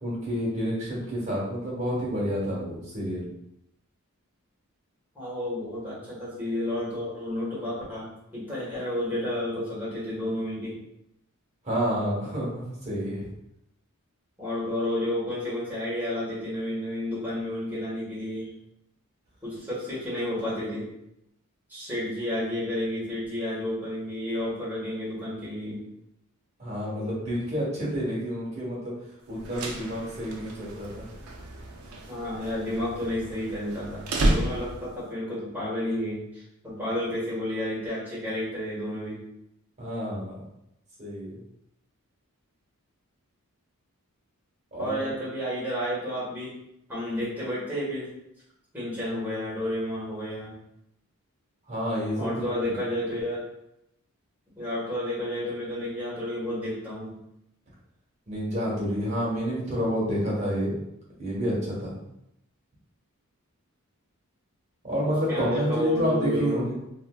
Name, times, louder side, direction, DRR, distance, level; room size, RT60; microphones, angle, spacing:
voice 1, 0.0-3.3 11.6-13.3 26.6-28.9 29.3-31.1 39.8-40.4 41.0-41.4 44.7-45.1 51.7-52.3 52.7-52.8 58.3-60.8 61.2-61.9 64.8-66.7, equal, 30° right, -6 dB, 1.1 m, -29 dB
voice 2, 5.1-10.7 14.4-18.5 19.4-20.8 21.7-25.8 32.1-39.2 44.8-46.6 46.9-48.1 48.7-50.5 52.1-53.4 54.6-57.2 65.0-66.6, left 1 dB, 10° right, -8 dB, 1.4 m, -31 dB
sound 1, 29.3-35.0, right 1 dB, 75° right, 0.5 m, -31 dB
3.2 x 2.5 x 2.3 m, 0.81 s
head